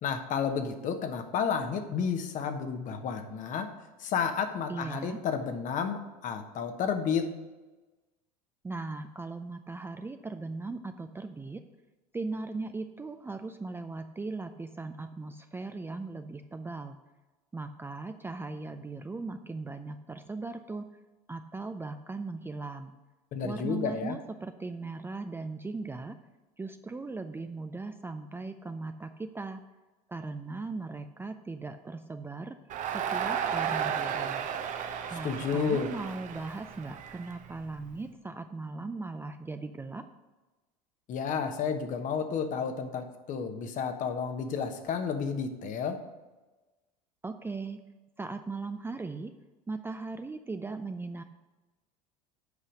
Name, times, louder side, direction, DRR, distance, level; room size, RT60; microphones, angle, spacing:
voice 1, 0.0-3.7 4.0-7.3 23.3-24.2 35.2-35.9 41.1-46.0, left 6 dB, 40° left, 7 dB, 1.1 m, -31 dB
voice 2, 4.7-5.2 8.6-11.6 12.1-17.0 17.5-20.9 21.3-22.9 23.4-26.2 26.6-29.6 30.1-32.6 32.9-34.5 35.1-40.1 47.2-47.8 48.2-49.3 49.7-51.2, right 3 dB, 10° right, 8 dB, 0.5 m, -38 dB
Crowd, 32.7-37.9, right 8 dB, 40° right, 0.8 m, -34 dB
8.3 x 5.6 x 6.4 m, 1.2 s
hypercardioid pair, 75°, 19 cm